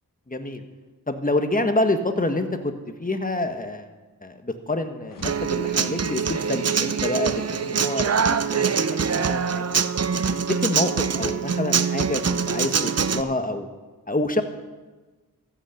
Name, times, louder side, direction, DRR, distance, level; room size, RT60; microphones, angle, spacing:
voice 1, 0.3-0.6 1.1-2.7 3.0-3.9 4.2-8.2 8.5-9.6 10.5-13.7 14.1-14.4, left 2 dB, 25° left, 7 dB, 1.4 m, -27 dB
sound 1, 5.0-7.2, left 4 dB, 65° left, 1.5 m, -47 dB
Human voice / Acoustic guitar, 5.2-13.2, right 6 dB, 45° right, 0.6 m, -24 dB
14.0 x 8.5 x 7.8 m, 1.3 s
wide cardioid pair, 60°, 36 cm